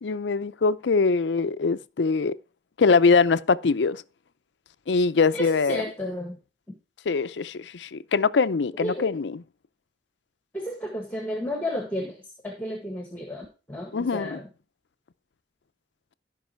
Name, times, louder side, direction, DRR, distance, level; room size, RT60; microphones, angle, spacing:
voice 1, 0.0-2.4 2.8-4.0 4.9-5.8 7.1-9.4 13.9-14.4, left 4 dB, 85° left, 0.5 m, -23 dB
voice 2, 5.3-6.4 8.8-9.1 10.5-14.5, left 1 dB, 10° left, 1.6 m, -32 dB
13.5 x 5.4 x 4.4 m
head